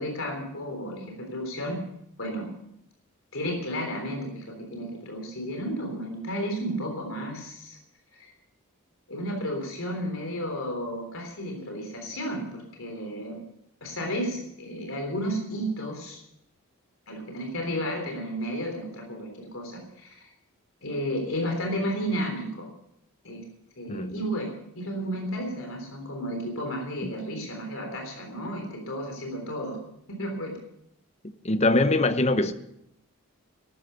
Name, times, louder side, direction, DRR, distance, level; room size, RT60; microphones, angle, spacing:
voice 1, 0.0-1.8 2.2-2.5 3.3-7.8 8.1-8.3 9.1-13.4 13.8-16.2 17.1-20.3 20.8-22.7 23.2-23.4 23.8-29.8 30.1-30.6, equal, 70° left, 3.6 m, -32 dB
voice 2, 31.2-32.5, left 2 dB, 30° left, 0.8 m, -23 dB
13.5 x 12.5 x 6.9 m
head